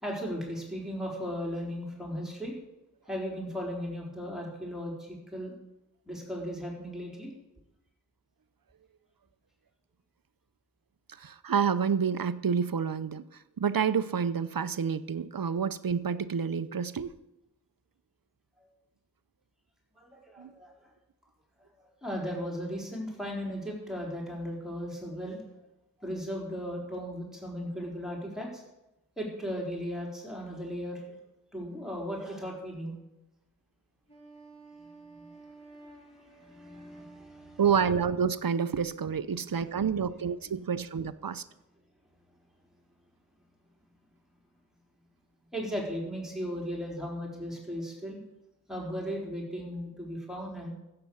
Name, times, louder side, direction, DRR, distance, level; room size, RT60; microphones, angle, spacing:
voice 1, 0.0-2.5 3.1-5.5 6.1-7.3 20.0-20.9 21.8-25.4 26.0-28.6 29.2-31.1 31.5-32.9 34.8-35.4 36.2-37.6 39.3-40.1 40.4-40.5 45.5-48.2 48.7-50.7, equal, ahead, -2 dB, 4.2 m, -37 dB
voice 2, 11.2-13.2 13.6-17.1 20.4-20.5 37.6-41.4, right 6 dB, 60° right, 14 dB, 0.7 m, -28 dB
Wind instrument woodwind instrument, 34.1-38.4, right 2 dB, 15° left, 3.7 m, -52 dB
14.5 x 7.9 x 7.1 m, 0.94 s
wide cardioid pair, 50°, 38 cm